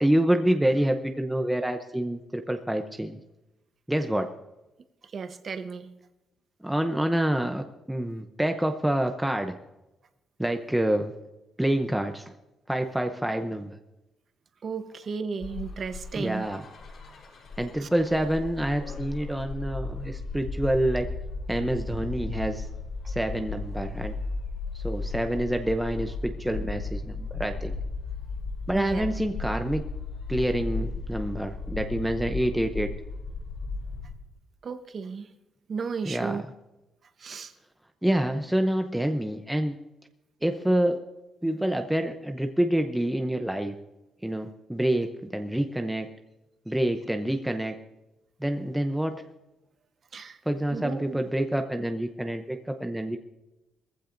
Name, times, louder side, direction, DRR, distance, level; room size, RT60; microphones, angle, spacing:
voice 1, 0.0-3.2 3.9-4.3 6.6-9.6 10.4-11.2 11.6-12.3 12.7-13.8 16.2-16.6 17.6-21.1 21.5-22.7 23.1-24.2 24.7-27.8 28.7-29.8 30.3-32.9 36.0-36.4 38.0-39.8 40.4-41.0 41.4-43.7 44.2-46.1 46.7-47.8 48.4-49.2 50.5-53.2, right 1 dB, 5° right, 5 dB, 0.6 m, -27 dB
voice 2, 5.0-5.9 14.6-16.5 17.8-17.9 28.7-29.1 34.6-35.3 35.7-36.4 37.2-37.5 50.1-50.4 50.7-51.2, right 5 dB, 40° right, 9 dB, 0.9 m, -34 dB
sound 1, 15.4-34.1, left 3 dB, 50° left, 6.2 m, -35 dB
21.0 x 15.0 x 2.6 m, 0.98 s
cardioid pair, 165°, 0 cm